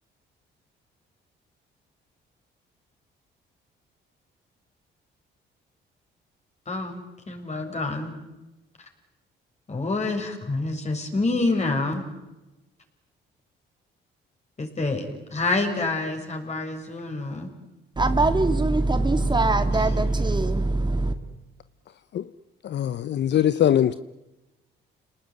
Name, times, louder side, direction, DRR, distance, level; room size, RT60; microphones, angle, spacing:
voice 1, 6.7-7.0 7.3-8.1 9.7-12.0 14.6-17.5, left 2 dB, 35° left, 7.2 m, -27 dB
voice 2, 18.0-21.1, right 2 dB, 20° right, 2.3 m, -22 dB
voice 3, 22.6-24.0, left 10 dB, 60° left, 0.9 m, -21 dB
29.5 x 19.5 x 9.7 m
cardioid pair, 90°, 20 cm